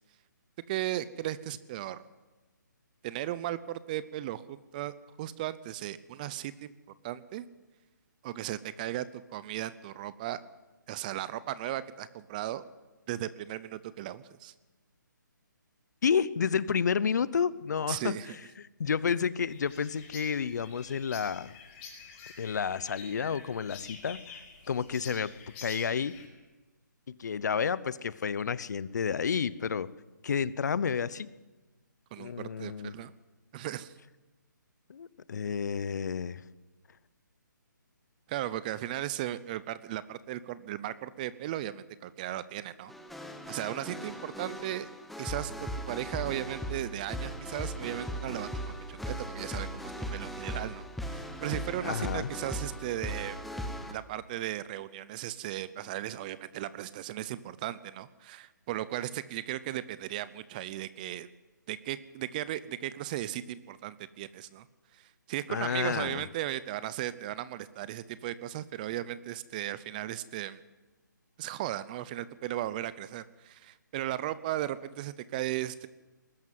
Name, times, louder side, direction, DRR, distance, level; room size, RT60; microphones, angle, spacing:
voice 1, 0.7-2.0 3.0-6.7 7.0-7.5 8.2-10.4 10.9-12.6 13.1-14.5 17.9-18.4 32.1-33.1 33.5-33.9 38.3-42.9 43.5-44.9 45.2-53.4 53.9-61.3 61.7-64.7 64.9-70.6 71.4-75.9, right 13 dB, 25° right, 16 dB, 0.7 m, -36 dB
voice 2, 16.0-18.2 18.8-21.5 22.4-24.2 24.7-25.3 25.6-26.1 27.1-29.9 30.2-31.3 32.2-32.9 34.9-36.4 51.8-52.3 65.5-66.2, left 6 dB, 60° left, 18 dB, 0.9 m, -30 dB
sound 1, 19.5-26.3, left 5 dB, 25° left, 5.4 m, -48 dB
sound 2, 42.9-53.9, equal, ahead, 1.0 m, -38 dB
21.0 x 13.0 x 9.5 m, 1.2 s
hypercardioid pair, 155°, 11 cm